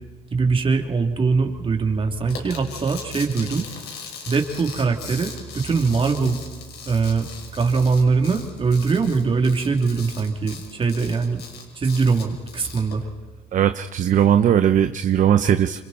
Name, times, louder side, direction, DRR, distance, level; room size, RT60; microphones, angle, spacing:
voice 1, 0.3-3.6 4.3-6.4 6.9-7.3 7.5-11.4 11.7-13.0, right 4 dB, 30° right, 3 dB, 3.2 m, -22 dB
sound 1, 2.3-12.9, left 6 dB, 70° left, 5.9 m, -39 dB
voice 2, 13.5-15.8, right 9 dB, 50° right, 10 dB, 0.9 m, -18 dB
28.0 x 26.0 x 4.4 m, 1.4 s
cardioid pair, 110°, 17 cm